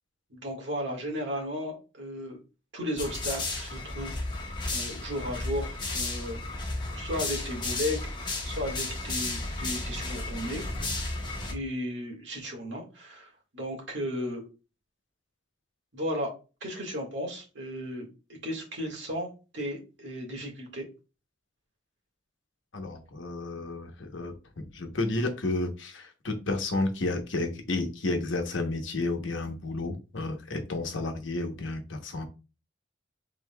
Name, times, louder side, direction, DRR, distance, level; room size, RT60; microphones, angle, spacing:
voice 1, 0.3-2.4 2.7-6.4 6.9-11.2 11.5-14.4 15.9-16.3 16.6-18.0 18.4-20.8, equal, 60° right, 0 dB, 1.7 m, -35 dB
sound 1, 3.0-11.5, left 2 dB, 25° left, 1.0 m, -33 dB
voice 2, 22.7-32.2, left 2 dB, 75° left, 5 dB, 0.9 m, -31 dB
5.4 x 3.7 x 2.2 m, 0.31 s
head